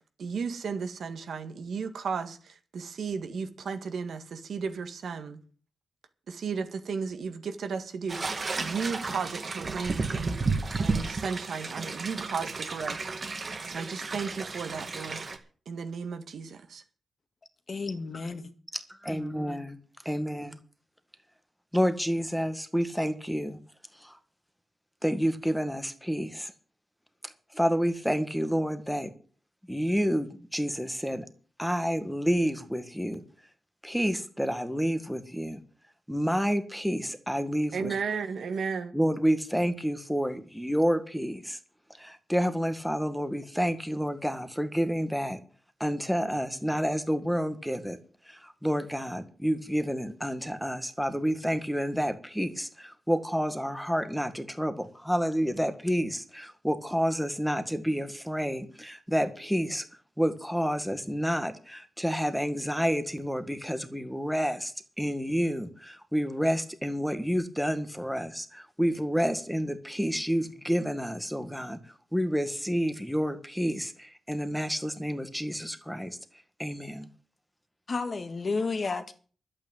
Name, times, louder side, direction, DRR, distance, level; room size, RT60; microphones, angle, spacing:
voice 1, 0.2-5.4 6.3-10.4 10.8-13.1 13.6-15.2 15.7-16.8 37.7-38.9, right 5 dB, 75° right, 1.8 m, -34 dB
sound 1, 8.1-15.4, right 3 dB, 40° right, 2.0 m, -33 dB
voice 2, 17.7-18.5 19.1-19.7 77.9-79.1, left 4 dB, 40° left, 1.8 m, -32 dB
voice 3, 18.7-19.8 20.0-20.6 21.7-23.6 24.0-24.2 25.0-26.5 27.2-29.1 29.7-31.3 31.6-33.2 33.8-35.6 36.1-38.0 38.9-41.6 42.0-45.4 45.8-48.0 48.2-59.9 60.2-71.8 72.1-76.2 76.6-77.1, equal, ahead, 1.7 m, -29 dB
12.0 x 8.7 x 9.0 m
wide cardioid pair, 125°, 0 cm